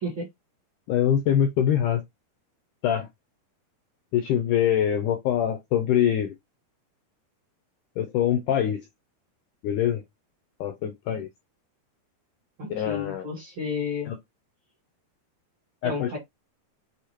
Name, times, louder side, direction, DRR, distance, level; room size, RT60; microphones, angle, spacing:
voice 1, 0.9-2.0 2.8-3.1 4.1-6.3 8.0-8.8 9.6-10.0 10.6-11.3 12.7-13.3 14.1-14.2 15.8-16.2, left 10 dB, 80° left, 1.9 m, -24 dB
voice 2, 12.6-14.1 15.8-16.2, left 3 dB, 45° right, 1.7 m, -31 dB
6.6 x 2.7 x 2.9 m
omnidirectional pair, 4.5 m